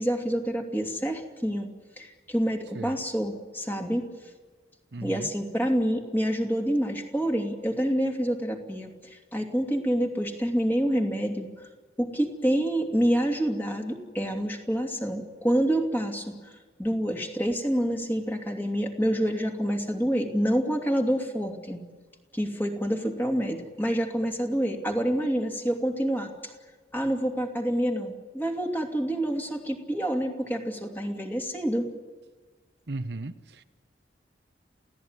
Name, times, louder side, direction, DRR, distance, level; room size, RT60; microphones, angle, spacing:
voice 1, 0.0-1.7 2.0-4.1 5.0-11.5 12.0-16.5 16.8-21.8 22.3-26.5 26.9-31.9, equal, 10° left, 2 dB, 2.8 m, -27 dB
voice 2, 4.9-5.3 32.9-33.6, right 2 dB, 65° right, 10 dB, 0.9 m, -36 dB
28.5 x 17.0 x 9.7 m, 1.4 s
head